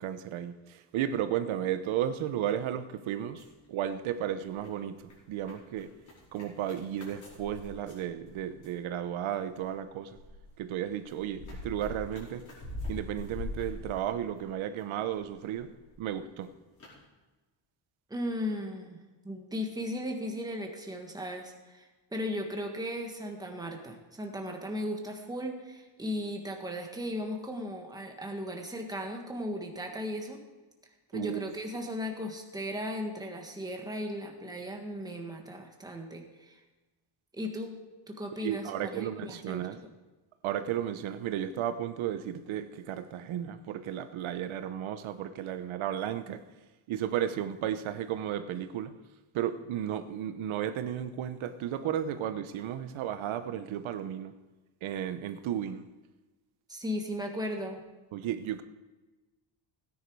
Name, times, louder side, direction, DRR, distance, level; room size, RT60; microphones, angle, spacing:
voice 1, 0.0-5.9 6.3-10.2 10.6-12.5 12.8-15.7 16.0-16.5 31.1-31.4 38.4-39.8 40.4-46.4 46.9-49.0 49.3-54.3 54.8-55.8 58.1-58.6, right 10 dB, 90° right, 10 dB, 1.0 m, -34 dB
sound 1, 3.2-4.2 4.5-8.9 9.5-14.8 15.1-16.0 16.4-16.5 16.8-16.9, left 2 dB, 40° left, 5.2 m, -43 dB
voice 2, 18.1-19.0 19.2-30.4 31.1-36.6 37.3-37.7 38.1-39.9 56.7-57.8, equal, 10° right, 2 dB, 1.6 m, -36 dB
16.5 x 10.0 x 4.7 m, 1.2 s
cardioid pair, 160°, 46 cm